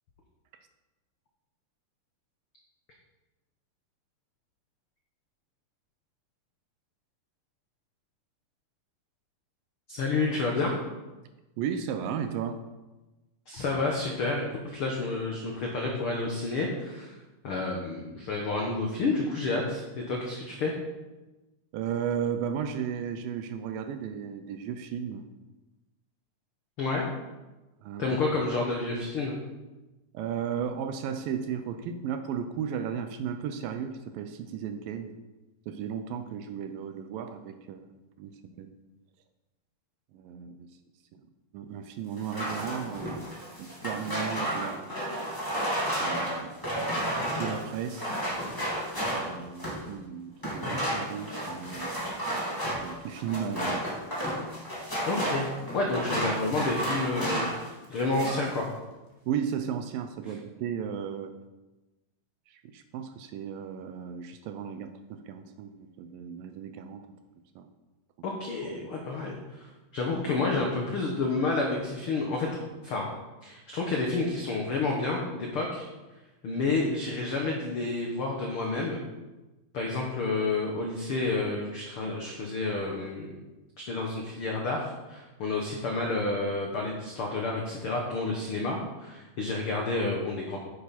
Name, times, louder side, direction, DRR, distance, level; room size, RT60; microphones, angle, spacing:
voice 1, 9.9-10.9 13.5-17.1 17.4-20.7 26.8-27.1 28.0-29.3 55.1-58.7 68.2-73.1 73.4-75.9 76.4-79.0 79.7-83.4 83.8-90.6, left 3 dB, 85° left, 0 dB, 1.2 m, -30 dB
voice 2, 11.6-12.6 21.7-25.3 27.8-28.2 30.1-35.1 35.7-37.9 38.2-38.7 40.1-40.7 41.1-41.2 41.5-43.2 43.6-45.0 46.0-46.5 47.4-48.1 49.0-52.1 52.8-53.9 59.3-61.3 62.5-67.1 67.6-67.7, right 8 dB, 80° right, 8 dB, 2.2 m, -35 dB
sound 1, 42.2-49.9 50.4-57.7 58.0-58.5, equal, 10° left, 1.7 m, -32 dB
9.7 x 9.4 x 4.2 m, 1.1 s
omnidirectional pair, 4.4 m